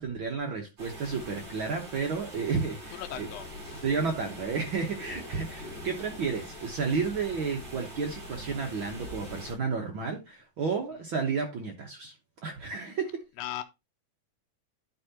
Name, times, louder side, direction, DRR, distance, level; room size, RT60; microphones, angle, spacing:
voice 1, 0.0-3.3 3.8-12.1 12.4-13.1, right 5 dB, 60° right, 1.4 m, -32 dB
sound 1, 0.8-9.5, equal, 35° right, 5.0 m, -43 dB
voice 2, 2.9-3.8 13.4-13.6, left 12 dB, 75° left, 1.6 m, -38 dB
11.5 x 4.8 x 2.9 m
omnidirectional pair, 3.5 m